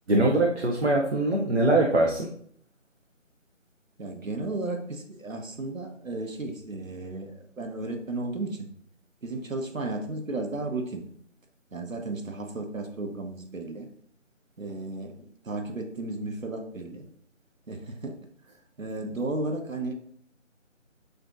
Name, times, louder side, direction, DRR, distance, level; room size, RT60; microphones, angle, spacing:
voice 1, 0.1-2.3, right 2 dB, 55° right, 0 dB, 0.7 m, -22 dB
voice 2, 4.0-7.3 7.6-8.7 9.2-11.1 11.7-13.9 14.6-17.0 17.7-18.2 18.8-19.9, right 2 dB, 85° right, 4 dB, 1.0 m, -34 dB
6.4 x 2.6 x 2.4 m, 0.62 s
figure-of-eight pair, 165°, 39 cm